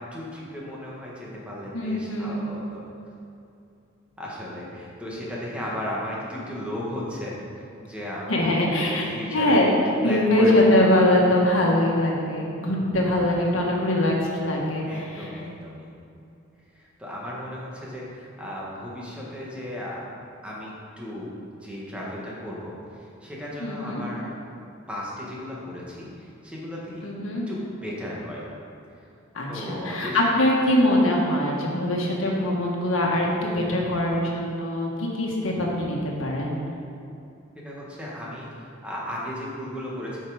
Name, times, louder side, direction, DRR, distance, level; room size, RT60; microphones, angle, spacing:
voice 1, 0.1-2.8 4.2-9.7 10.0-10.8 14.9-15.9 16.7-20.0 20.4-21.3 21.6-24.3 24.9-27.1 27.5-28.4 29.5-30.2 37.6-40.2, left 1 dB, 5° right, -5 dB, 1.6 m, -35 dB
voice 2, 1.7-2.4 8.3-9.7 10.0-15.3 23.6-24.0 27.0-27.4 29.3-36.6, left 1 dB, 75° left, -2 dB, 1.6 m, -23 dB
8.2 x 5.8 x 5.1 m, 2.6 s
head